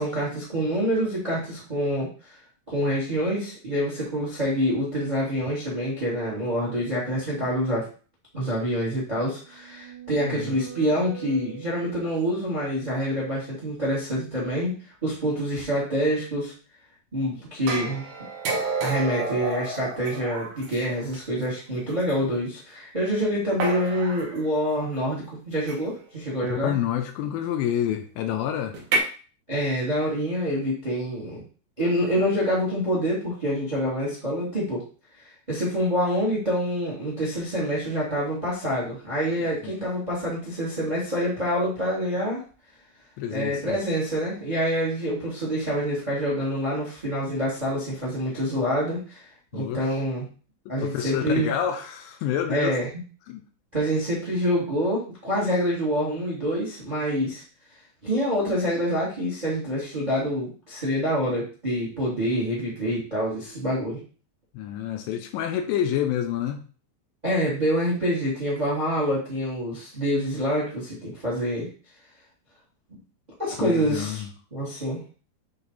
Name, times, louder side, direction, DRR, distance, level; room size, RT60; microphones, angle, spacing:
voice 1, 0.0-2.3 2.7-7.8 8.3-14.7 15.0-16.5 17.1-18.1 18.8-26.7 29.5-31.4 31.8-34.8 35.5-42.4 43.3-49.2 49.5-50.2 50.7-51.5 52.5-52.9 53.7-57.4 58.0-64.0 67.2-71.7 73.4-74.2 74.5-75.0, equal, 25° right, -5 dB, 0.9 m, -26 dB
sound 1, 9.3-12.3, right 7 dB, 70° right, 2.2 m, -42 dB
voice 2, 10.2-10.6 26.6-28.7 39.6-39.7 43.2-43.8 49.5-50.0 50.7-52.8 53.3-53.4 64.5-66.6 73.6-74.3, left 10 dB, 80° left, 5 dB, 2.9 m, -28 dB
sound 2, 17.7-21.2 22.1-22.2 23.6-24.4 25.7-26.0 28.7-29.0, right 3 dB, 85° right, 1.6 m, -29 dB
7.7 x 3.4 x 4.0 m, 0.39 s
omnidirectional pair, 5.3 m